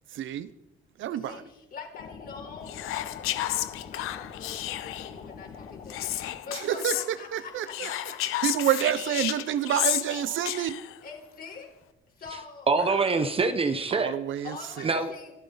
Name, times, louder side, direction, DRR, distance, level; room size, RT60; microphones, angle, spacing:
voice 1, 0.1-0.5 1.0-1.4 6.5-7.9 8.4-10.8 13.9-14.9, right 10 dB, 70° right, 13 dB, 1.0 m, -28 dB
voice 2, 1.1-8.8 11.0-11.7 12.2-12.7 14.4-15.3, left 5 dB, 45° left, 2 dB, 4.4 m, -44 dB
sound 1, 1.9-6.4, left 6 dB, 70° left, 2.1 m, -44 dB
Whispering, 2.7-5.2 5.9-7.1 7.7-11.0, left 14 dB, 90° left, 1.0 m, -32 dB
voice 3, 12.7-14.1 14.8-15.3, right 4 dB, 25° right, 8 dB, 1.0 m, -25 dB
26.5 x 13.0 x 4.0 m, 0.95 s
cardioid pair, 145°, 21 cm